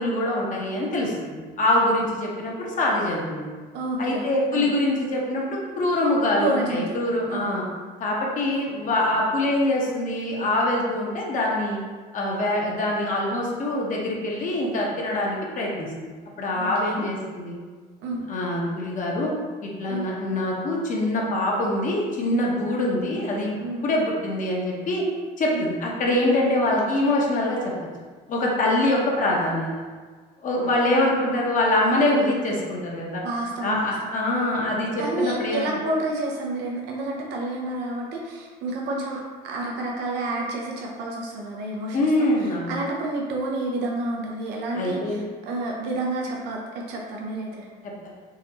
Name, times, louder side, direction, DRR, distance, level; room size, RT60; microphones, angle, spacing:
voice 1, 0.0-3.5 4.0-7.6 8.0-11.8 12.1-16.1 16.4-17.6 18.3-19.3 19.6-23.6 23.8-25.0 25.4-27.6 28.3-29.7 30.4-33.2 33.6-35.7 41.9-42.8 44.7-45.2, left 1 dB, 50° left, -2 dB, 1.0 m, -24 dB
voice 2, 3.7-4.7 6.4-7.0 7.3-7.6 16.5-17.1 18.0-18.2 19.9-20.1 22.5-22.6 23.6-24.1 25.5-25.6 26.2-26.3 30.9-31.2 33.2-33.9 34.9-47.7, right 2 dB, 90° right, -1 dB, 0.6 m, -30 dB
4.0 x 2.9 x 2.8 m, 1.5 s
cardioid pair, 110°, 17 cm